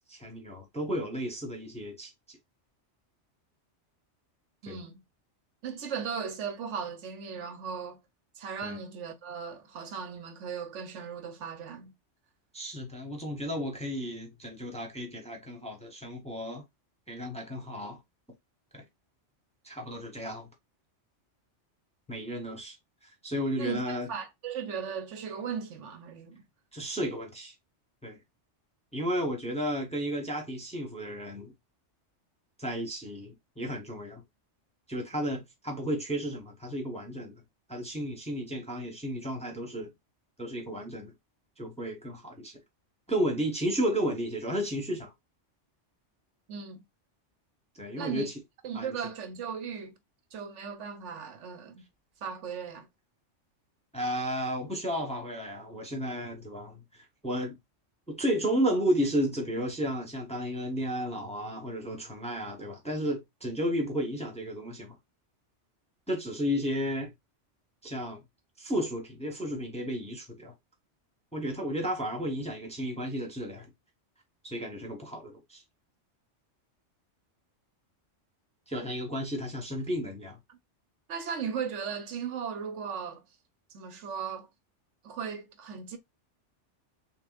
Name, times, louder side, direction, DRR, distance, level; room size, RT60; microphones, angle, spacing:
voice 1, 0.1-2.4 4.7-4.8 8.6-8.8 12.5-16.6 17.1-18.0 18.7-18.8 19.6-20.5 22.1-22.8 23.0-24.1 26.7-27.5 28.0-28.2 28.9-31.5 32.6-34.2 34.9-37.3 37.7-39.9 40.4-41.1 41.6-42.6 43.1-45.1 47.8-48.3 48.7-49.0 53.9-57.6 58.1-64.9 66.1-67.1 67.8-68.2 68.6-70.5 71.3-73.7 74.4-75.6 78.7-80.4, equal, 5° left, 1.1 m, -33 dB
voice 2, 4.6-5.0 5.6-8.0 8.4-11.9 23.6-26.4 46.5-46.8 48.0-48.3 48.6-49.9 50.3-51.8 52.2-52.9 80.5-80.6 81.1-83.2 83.7-84.5 85.0-86.0, right 6 dB, 80° right, 1.1 m, -37 dB
6.7 x 2.4 x 2.4 m
omnidirectional pair, 1.2 m